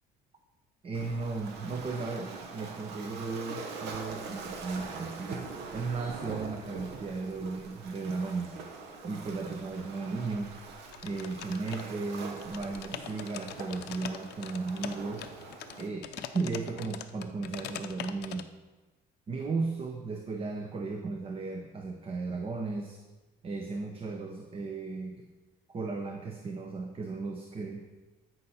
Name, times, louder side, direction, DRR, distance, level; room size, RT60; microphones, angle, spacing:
voice 1, 0.8-5.4 5.7-8.6 9.0-10.5 11.0-15.3 15.8-18.5 19.3-23.0 23.4-25.2 25.7-27.8, right 4 dB, 35° right, 3 dB, 0.8 m, -35 dB
Waves surf, 0.9-15.9, right 4 dB, 85° right, 1.1 m, -43 dB
sound 1, 10.9-12.1 12.4-18.4, left 11 dB, 75° left, 0.6 m, -42 dB
13.5 x 5.6 x 4.3 m, 1.2 s
cardioid pair, 110°, 17 cm